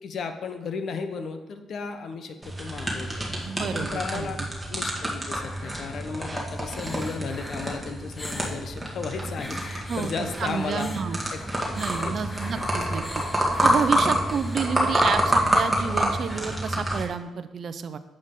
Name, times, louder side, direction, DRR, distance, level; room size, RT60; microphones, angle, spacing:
voice 1, 0.0-3.1 3.4-4.4 4.7-10.9 11.3-11.4 12.0-12.7, left 5 dB, 60° left, 8 dB, 1.0 m, -35 dB
sound 1, 2.4-17.0, equal, 5° right, 2.1 m, -27 dB
voice 2, 3.5-4.3 9.9-11.2 11.8-13.2 13.6-18.0, right 6 dB, 55° right, 11 dB, 0.7 m, -30 dB
sound 2, 6.5-8.6 9.3-15.7 16.7-16.8, left 1 dB, 15° left, 1.2 m, -43 dB
11.0 x 7.6 x 3.8 m, 1.0 s
cardioid pair, 90°, 0 cm